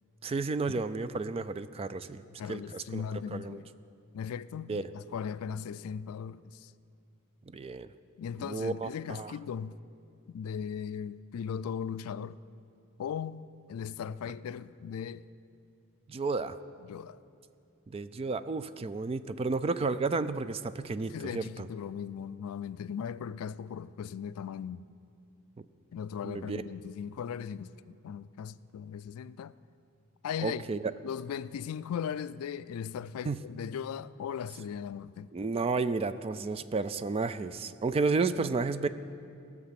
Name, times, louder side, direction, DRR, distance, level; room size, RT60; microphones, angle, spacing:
voice 1, 0.2-2.2 2.5-3.0 3.3-3.6 4.7-4.9 7.5-7.9 8.4-9.3 16.1-16.6 17.9-21.7 25.6-25.7 26.2-26.6 30.4-30.8 33.3-33.4 35.3-38.9, right 4 dB, 25° right, 0.3 m, -32 dB
voice 2, 2.4-3.7 4.1-6.7 8.2-9.8 10.3-12.4 13.0-15.2 16.8-17.2 21.1-24.8 25.9-29.5 30.2-30.6 31.0-35.3, left 7 dB, 75° left, 0.3 m, -38 dB
17.5 x 7.0 x 5.8 m
head